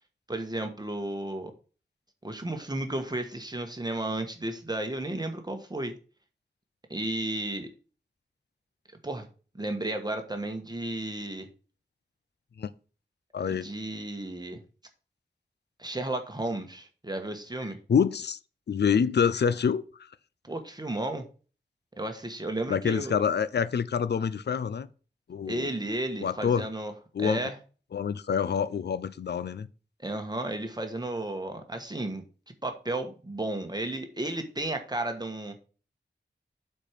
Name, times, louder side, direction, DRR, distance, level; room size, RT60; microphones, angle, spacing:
voice 1, 0.3-1.5 2.2-5.9 6.9-7.7 9.0-9.3 9.6-11.5 13.5-14.6 15.8-17.8 20.4-21.2 22.0-23.2 25.4-26.9 27.2-27.6 30.0-32.2 32.6-35.5, right 1 dB, 20° right, 1.3 m, -33 dB
voice 2, 13.3-13.7 17.9-18.4 18.7-19.8 22.7-24.9 25.3-25.7 26.2-26.7 27.1-27.5 27.9-29.7, left 7 dB, 70° left, 0.5 m, -26 dB
7.5 x 4.5 x 5.0 m
wide cardioid pair, 70°, 18 cm